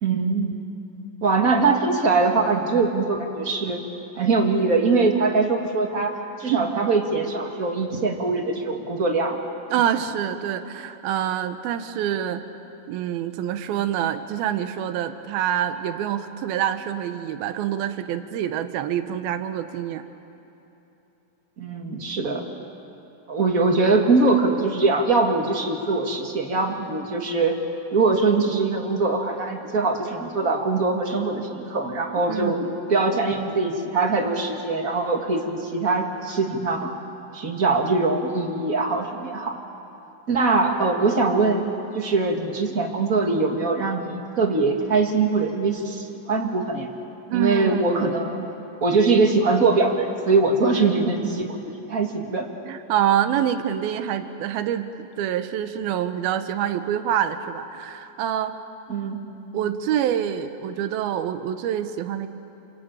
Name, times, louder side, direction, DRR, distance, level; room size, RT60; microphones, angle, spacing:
voice 1, 0.0-0.6 1.2-3.8 4.2-9.4 21.6-22.4 23.3-27.6 27.9-32.6 32.9-36.9 37.3-39.6 40.3-41.6 41.9-46.9 47.3-48.4 48.8-51.6 51.8-52.5 58.9-59.2, right 3 dB, 35° right, 3 dB, 1.6 m, -22 dB
voice 2, 6.5-6.9 9.7-12.4 12.9-20.0 32.3-32.7 47.3-48.1 52.7-58.5 59.5-62.3, right 10 dB, 85° right, 9 dB, 2.9 m, -26 dB
29.5 x 22.5 x 9.0 m, 2.9 s
omnidirectional pair, 4.3 m